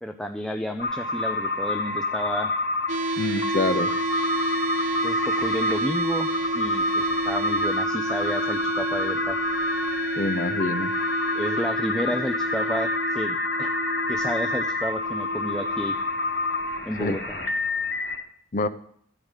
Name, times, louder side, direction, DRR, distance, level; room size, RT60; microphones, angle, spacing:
voice 1, 0.0-2.6 5.0-9.4 11.3-13.7 14.1-16.0 16.8-17.4, equal, 5° left, 5 dB, 0.5 m, -31 dB
sound 1, 0.8-18.2, left 2 dB, 60° left, 3.2 m, -28 dB
sound 2, 2.9-16.8, right 2 dB, 40° right, 0.6 m, -31 dB
voice 2, 3.2-3.9 10.2-10.9 17.0-17.2 18.5-18.7, left 2 dB, 45° left, 10 dB, 0.8 m, -26 dB
14.5 x 5.0 x 9.0 m, 0.64 s
head